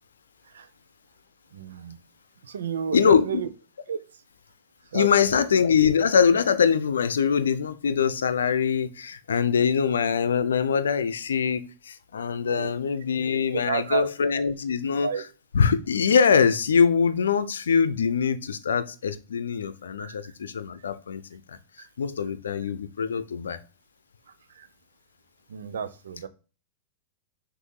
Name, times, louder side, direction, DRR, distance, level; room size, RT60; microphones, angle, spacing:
voice 1, 1.5-2.0 2.4-3.5 3.9-4.0 4.9-5.4 12.3-12.7 13.5-14.1 15.0-15.2 20.0-20.3 21.8-21.9 24.5-24.7 25.5-26.3, right 7 dB, 80° right, 0.6 m, -32 dB
voice 2, 2.9-3.4 4.9-15.1 15.5-21.6 22.0-23.6, left 6 dB, 85° left, 0.6 m, -23 dB
6.3 x 2.7 x 5.5 m
hypercardioid pair, 105°, 0 cm